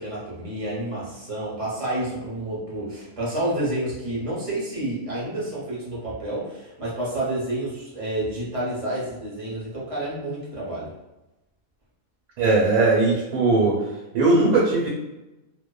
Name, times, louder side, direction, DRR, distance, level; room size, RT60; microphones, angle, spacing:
voice 1, 0.0-10.9, right 1 dB, 40° right, -7 dB, 0.4 m, -29 dB
voice 2, 12.4-13.8 14.1-14.9, right 3 dB, 90° right, -3 dB, 1.1 m, -19 dB
2.7 x 2.1 x 2.2 m, 0.99 s
omnidirectional pair, 1.6 m